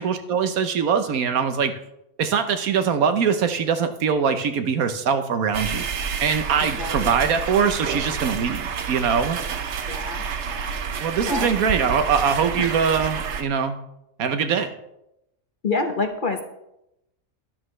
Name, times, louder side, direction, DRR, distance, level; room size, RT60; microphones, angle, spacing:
voice 1, 0.0-1.7 2.2-9.4 11.0-13.8 14.2-14.7, right 6 dB, 75° right, 9 dB, 1.3 m, -22 dB
sound 1, 5.5-13.4, right 6 dB, 60° right, 1.0 m, -29 dB
voice 2, 6.6-7.1 9.9-10.2 10.5-10.8 11.2-11.5 12.6-12.7 15.6-16.4, left 3 dB, 40° left, 5 dB, 0.9 m, -27 dB
12.0 x 11.0 x 3.2 m, 0.84 s
omnidirectional pair, 1.5 m